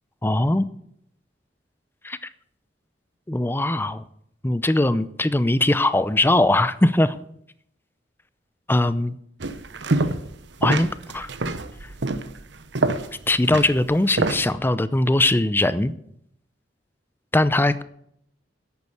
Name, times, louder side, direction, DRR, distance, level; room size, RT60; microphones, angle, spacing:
voice 1, 0.2-0.7 2.0-2.2 3.3-4.0 4.4-7.2 8.7-9.2 10.6-10.9 11.1-11.3 13.3-15.9 17.3-17.8, left 1 dB, 10° left, 14 dB, 0.6 m, -20 dB
sound 1, 9.4-10.4 10.6-14.5, right 2 dB, 70° right, 0.9 m, -26 dB
11.0 x 8.7 x 8.1 m, 0.72 s
head